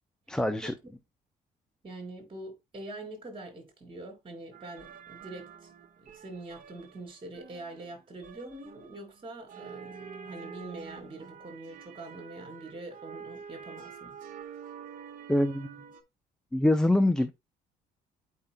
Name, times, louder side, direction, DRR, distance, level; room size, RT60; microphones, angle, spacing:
voice 1, 0.3-0.7 15.3-15.7 16.5-17.3, left 1 dB, 5° left, 0.6 m, -24 dB
voice 2, 1.8-5.7 6.0-14.1, right 2 dB, 30° right, 4.2 m, -44 dB
sound 1, 4.5-16.0, right 6 dB, 50° right, 1.4 m, -47 dB
8.6 x 5.5 x 2.2 m
cardioid pair, 110°, 17 cm